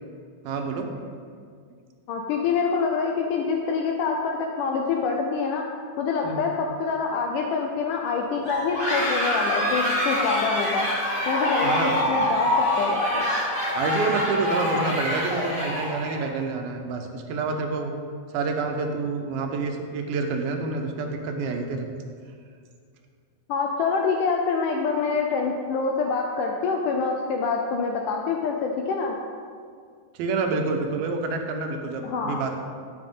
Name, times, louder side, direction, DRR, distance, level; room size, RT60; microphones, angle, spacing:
voice 1, 0.4-0.9 6.2-6.5 11.6-12.1 13.8-18.0 18.3-22.0 30.1-32.5, right 4 dB, 80° right, 4 dB, 2.7 m, -28 dB
voice 2, 2.1-5.6 6.0-10.9 11.3-12.5 12.8-13.2 23.5-29.2 32.0-32.4, left 5 dB, 80° left, 1 dB, 1.9 m, -26 dB
sound 1, 8.4-16.3, left 1 dB, 40° left, 0.7 m, -25 dB
10.5 x 8.8 x 3.7 m, 2.1 s
omnidirectional pair, 4.3 m